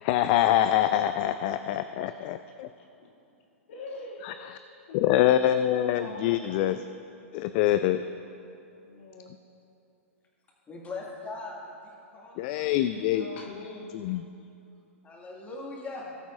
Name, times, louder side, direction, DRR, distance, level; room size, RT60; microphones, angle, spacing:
voice 1, 0.0-2.7 4.2-4.3 4.9-6.8 7.3-8.0 12.4-13.3 14.0-14.2, left 12 dB, 45° left, 11 dB, 0.3 m, -25 dB
voice 2, 2.8-3.1 3.7-4.5 4.9-5.6 6.0-6.7 8.8-9.3 12.4-14.1, left 3 dB, 60° left, -2 dB, 2.2 m, -44 dB
voice 3, 10.7-12.7 13.1-13.3 15.0-16.1, left 3 dB, 20° left, -2 dB, 2.0 m, -40 dB
19.0 x 7.9 x 2.5 m, 2.7 s
hypercardioid pair, 110°, 7 cm